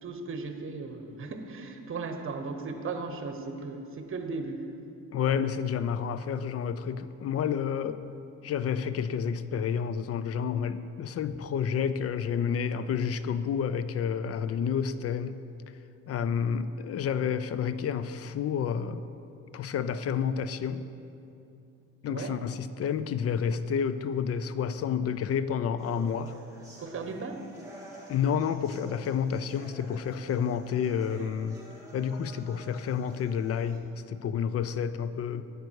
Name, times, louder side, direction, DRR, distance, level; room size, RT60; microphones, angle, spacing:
voice 1, 0.0-4.7 22.1-22.4 26.8-27.5, right 4 dB, 45° right, 6 dB, 1.0 m, -36 dB
voice 2, 5.1-8.0 8.4-15.4 16.1-19.1 19.5-20.9 22.0-26.4 28.1-31.6 31.9-35.4, left 7 dB, 50° left, 13 dB, 0.5 m, -30 dB
sound 1, 25.8-33.8, right 1 dB, 10° right, 2.5 m, -50 dB
9.6 x 8.1 x 4.7 m, 2.7 s
cardioid pair, 90°, 30 cm